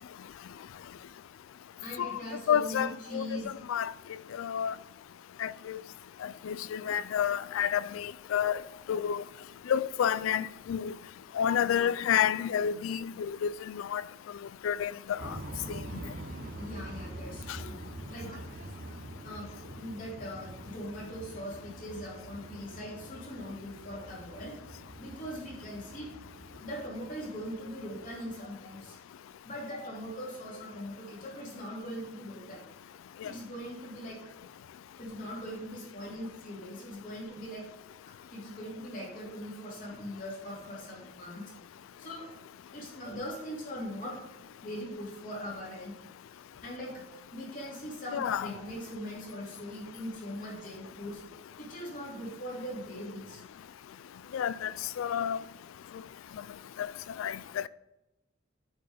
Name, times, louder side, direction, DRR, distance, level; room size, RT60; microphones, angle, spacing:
voice 1, 1.8-3.5 7.5-7.6 8.7-8.8 11.6-12.1 16.6-17.8 18.1-18.4 19.2-24.6 25.0-26.1 26.6-29.0 29.4-32.6 33.2-34.3 35.0-37.7 38.3-41.4 42.0-42.3 42.7-44.2 44.6-45.9 46.6-47.0 47.3-51.2 51.6-53.4, equal, 40° left, 2.9 m, -41 dB
voice 2, 2.5-3.4 3.7-3.9 4.4-4.7 5.4-5.8 6.2-8.6 8.9-9.2 9.7-10.9 11.3-14.0 14.6-15.4 15.7-15.8 17.5-17.6 33.2-33.3 48.1-48.5 54.3-55.4 56.8-56.9 57.2-57.7, left 9 dB, 85° left, 0.3 m, -30 dB
sound 1, 15.2-28.5, right 2 dB, 45° right, 0.6 m, -45 dB
8.7 x 4.6 x 5.1 m
head